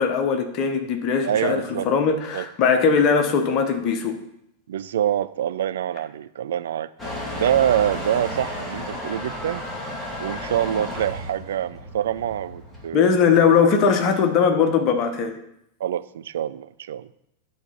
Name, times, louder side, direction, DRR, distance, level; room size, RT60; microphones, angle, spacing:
voice 1, 0.0-4.2 12.9-15.4, left 6 dB, 40° left, 6 dB, 1.2 m, -20 dB
voice 2, 1.2-1.9 2.3-2.5 4.7-6.9 7.3-9.6 10.2-13.1 15.8-17.1, right 10 dB, 60° right, 14 dB, 0.4 m, -25 dB
Motor vehicle (road) / Engine starting / Accelerating revving vroom, 7.0-12.9, left 1 dB, 5° left, 2.3 m, -33 dB
10.0 x 4.1 x 5.7 m, 0.79 s
figure-of-eight pair, 90°, 0 cm